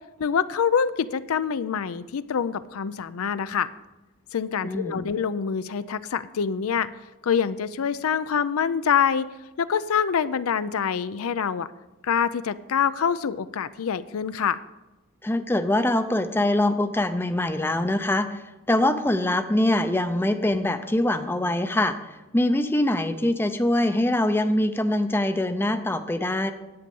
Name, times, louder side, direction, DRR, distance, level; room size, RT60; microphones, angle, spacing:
voice 1, 0.2-3.7 4.3-6.9 7.2-9.3 9.6-11.7 12.0-14.6, left 7 dB, 80° left, 14 dB, 0.5 m, -25 dB
voice 2, 4.6-5.0 15.2-22.0 22.3-26.5, left 1 dB, 10° left, 8 dB, 0.5 m, -23 dB
10.5 x 8.6 x 5.3 m, 1.0 s
head